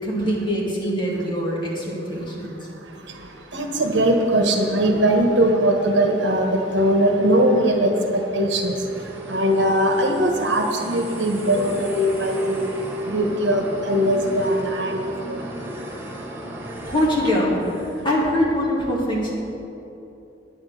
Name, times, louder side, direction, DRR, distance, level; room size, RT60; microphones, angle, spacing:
voice 1, 0.0-2.6 16.9-19.3, equal, 25° left, -5 dB, 2.5 m, -23 dB
voice 2, 3.5-8.8 9.3-12.6 13.1-15.0 15.3-15.4, right 1 dB, 65° right, 3 dB, 1.3 m, -20 dB
sound 1, 8.4-18.1, right 1 dB, 10° right, 1.2 m, -36 dB
9.9 x 9.4 x 6.6 m, 2.9 s
head